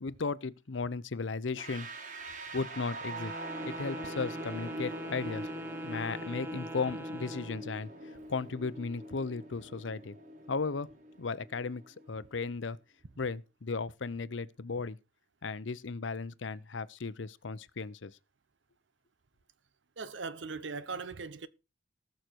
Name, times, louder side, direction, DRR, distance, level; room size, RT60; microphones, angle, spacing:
voice 1, 0.0-1.9 2.5-3.3 3.6-5.5 5.8-7.9 8.3-10.2 10.5-10.9 11.2-12.8 13.2-15.0 15.4-18.1, left 4 dB, 85° left, 0.7 m, -35 dB
sound 1, 1.6-12.4, right 1 dB, 45° right, 1.8 m, -43 dB
Wind instrument woodwind instrument, 3.0-7.6, right 1 dB, 10° right, 0.7 m, -44 dB
voice 2, 20.0-21.5, right 4 dB, 80° right, 0.8 m, -39 dB
19.0 x 6.5 x 4.5 m
head